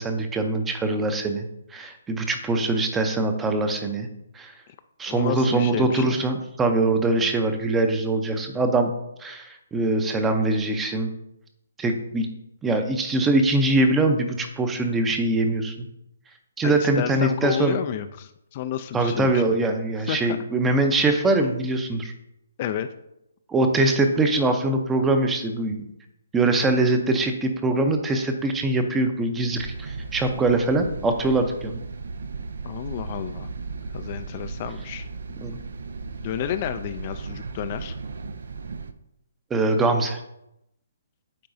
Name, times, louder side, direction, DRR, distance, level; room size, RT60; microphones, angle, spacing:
voice 1, 0.0-1.5 1.7-4.1 4.3-4.5 5.0-8.9 9.2-11.1 11.8-12.3 12.6-15.9 16.6-17.8 18.9-22.1 23.5-25.9 26.3-31.8 35.4-35.6 39.5-40.2, right 2 dB, 10° right, 6 dB, 0.6 m, -23 dB
voice 2, 5.1-6.2 16.6-19.6 20.1-20.4 22.6-22.9 32.6-33.5 33.9-35.1 36.2-38.0, left 10 dB, 35° left, 9 dB, 0.3 m, -31 dB
sound 1, 29.5-38.9, right 4 dB, 65° right, 0.4 m, -36 dB
8.5 x 4.6 x 2.6 m, 0.84 s
figure-of-eight pair, 140°, 0 cm